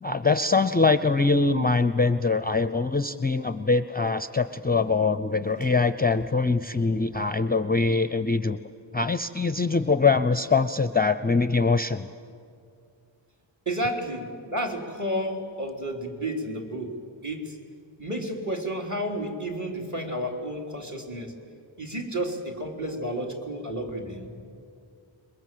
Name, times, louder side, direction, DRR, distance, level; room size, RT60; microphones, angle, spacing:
voice 1, 0.0-8.6 8.9-12.1, left 4 dB, 20° left, 12 dB, 0.6 m, -23 dB
voice 2, 13.7-17.0 17.2-17.6 18.0-21.3 21.8-24.3, right 1 dB, 35° right, 3 dB, 3.6 m, -31 dB
27.5 x 22.5 x 7.7 m, 2.4 s
wide cardioid pair, 70°, 48 cm